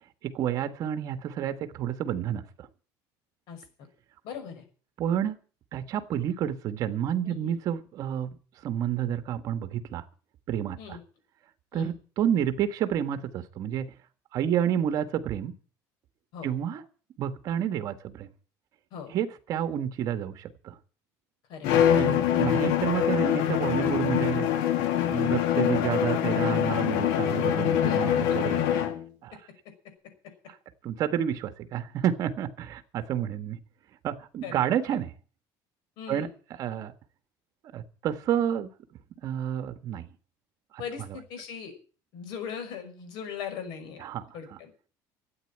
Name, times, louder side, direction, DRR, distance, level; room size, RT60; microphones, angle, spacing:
voice 1, 0.2-2.7 5.0-5.4 5.7-8.3 8.6-10.0 10.5-11.0 11.7-13.9 14.3-15.5 16.4-16.8 17.2-18.3 19.1-20.8 22.0-24.5 25.1-28.6 29.2-29.4 30.5-30.6 30.8-33.6 34.0-35.1 36.1-36.3 36.6-36.9 37.7-38.7 39.2-40.1 44.0-44.3, right 10 dB, 45° right, 9 dB, 1.5 m, -29 dB
voice 2, 4.2-4.6 7.2-7.6 10.8-11.0 11.7-11.9 16.3-16.5 18.9-19.1 21.5-21.8 27.9-28.0 34.4-35.0 36.0-36.3 40.8-41.7 42.1-44.0 44.3-44.7, left 7 dB, 65° left, 6 dB, 5.8 m, -39 dB
Bowed string instrument, 21.6-29.0, left 10 dB, 90° left, 2.3 m, -24 dB
13.5 x 9.0 x 8.6 m, 0.39 s
cardioid pair, 160°, 8 cm